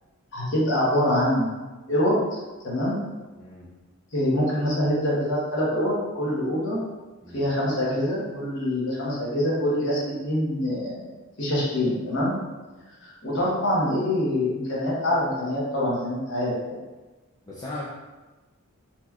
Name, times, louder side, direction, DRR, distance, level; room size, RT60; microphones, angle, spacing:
voice 1, 0.3-1.5 1.9-2.2 2.6-3.0 4.1-6.8 7.3-11.1 11.4-12.3 13.0-16.8, left 1 dB, 55° left, -7 dB, 1.2 m, -25 dB
voice 2, 3.4-3.7 7.2-7.5 12.7-12.8 17.5-17.8, left 1 dB, 20° left, -8 dB, 0.4 m, -38 dB
4.1 x 2.9 x 2.3 m, 1.2 s
head